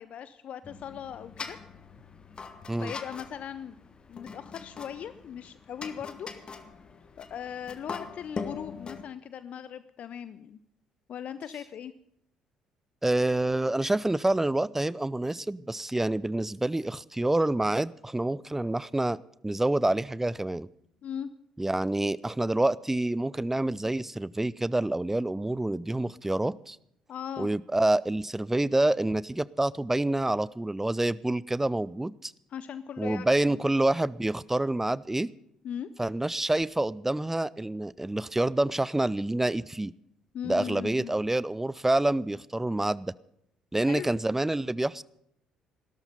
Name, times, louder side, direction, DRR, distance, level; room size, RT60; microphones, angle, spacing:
voice 1, 0.0-1.6 2.8-3.8 4.1-6.3 7.2-10.6 11.1-11.9 21.0-21.3 27.1-27.5 32.5-33.6 35.6-35.9 40.3-41.1 43.8-44.1, left 9 dB, 50° left, 14 dB, 0.6 m, -39 dB
sound 1, 0.6-9.0, left 4 dB, 35° left, 1.6 m, -42 dB
voice 2, 13.0-19.2 19.4-20.7 21.6-26.8 27.4-32.3 33.0-35.3 36.0-39.9 40.4-43.1 43.7-45.0, right 2 dB, 10° right, 21 dB, 0.6 m, -27 dB
16.0 x 13.0 x 5.4 m, 0.74 s
figure-of-eight pair, 50°, 3 cm